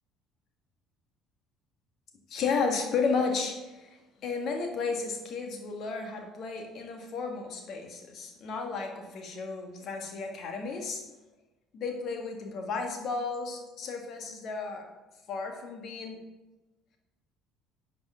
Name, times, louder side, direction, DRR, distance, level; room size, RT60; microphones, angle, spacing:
voice 1, 2.3-11.0 11.7-14.9 15.3-16.2, left 4 dB, 45° left, 3 dB, 1.6 m, -33 dB
10.0 x 4.9 x 6.2 m, 1.1 s
figure-of-eight pair, 55°, 0 cm